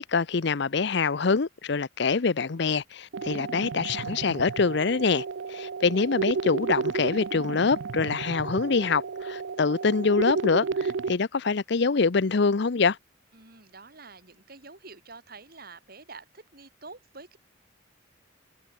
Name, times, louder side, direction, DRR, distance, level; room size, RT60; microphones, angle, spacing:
voice 1, 0.0-13.0, left 4 dB, 60° left, 0.6 m, -25 dB
sound 1, 3.1-11.1, right 5 dB, 75° right, 0.5 m, -32 dB
voice 2, 13.3-17.4, right 3 dB, 50° right, 3.7 m, -47 dB
head